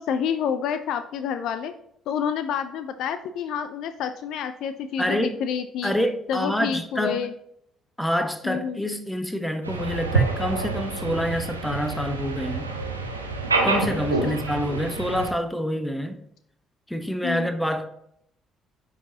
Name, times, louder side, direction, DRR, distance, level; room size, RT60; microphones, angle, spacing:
voice 1, 0.0-1.7 2.1-5.9 6.3-7.3 8.4-8.8 14.2-14.4 17.2-17.5, left 8 dB, 60° left, 0.4 m, -28 dB
voice 2, 5.0-5.4 5.8-7.3 8.0-12.7 13.6-16.2 16.9-17.9, equal, 5° left, 1.1 m, -27 dB
sound 1, 9.6-15.3, right 3 dB, 90° right, 0.7 m, -27 dB
9.8 x 4.8 x 2.8 m
figure-of-eight pair, 45°, 0 cm